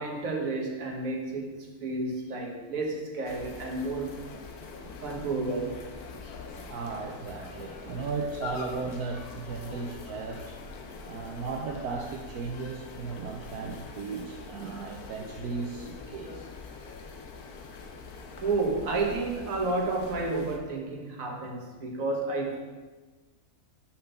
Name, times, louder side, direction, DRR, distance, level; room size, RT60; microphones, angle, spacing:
voice 1, 0.0-4.1 5.0-5.8 18.4-22.6, right 3 dB, 65° right, 1 dB, 1.6 m, -31 dB
sound 1, 3.2-20.6, left 4 dB, 90° left, 1.4 m, -44 dB
voice 2, 6.6-10.6 11.0-16.5, right 4 dB, 85° right, 2 dB, 1.2 m, -36 dB
5.8 x 5.8 x 6.6 m, 1.3 s
omnidirectional pair, 1.6 m